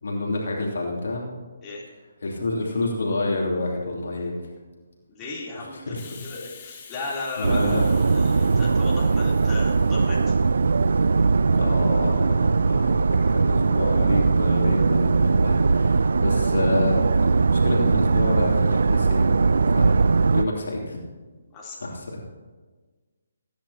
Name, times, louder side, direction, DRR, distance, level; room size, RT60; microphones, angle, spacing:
voice 1, 0.0-1.3 2.2-4.3 5.6-6.0 7.4-7.9 11.5-20.0 20.3-21.0 21.8-22.2, left 2 dB, 70° left, -2 dB, 3.0 m, -28 dB
voice 2, 5.1-10.3 21.5-21.8, left 3 dB, 20° left, -7 dB, 3.5 m, -36 dB
Hiss, 6.0-11.3, left 6 dB, 40° left, 1.8 m, -47 dB
sound 1, 7.4-20.4, right 4 dB, 70° right, 0.4 m, -20 dB
20.5 x 10.0 x 2.9 m, 1.4 s
figure-of-eight pair, 145°, 0 cm